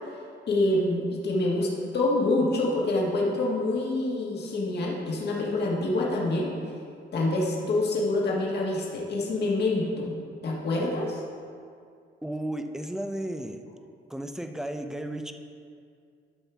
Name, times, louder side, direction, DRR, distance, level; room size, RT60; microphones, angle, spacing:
voice 1, 0.5-6.6 7.1-10.2 10.4-11.2, left 2 dB, 55° left, -3 dB, 1.7 m, -26 dB
voice 2, 12.2-13.6 14.1-15.3, right 1 dB, 5° right, 6 dB, 0.6 m, -33 dB
12.5 x 5.6 x 3.5 m, 2.3 s
cardioid pair, 90°, 20 cm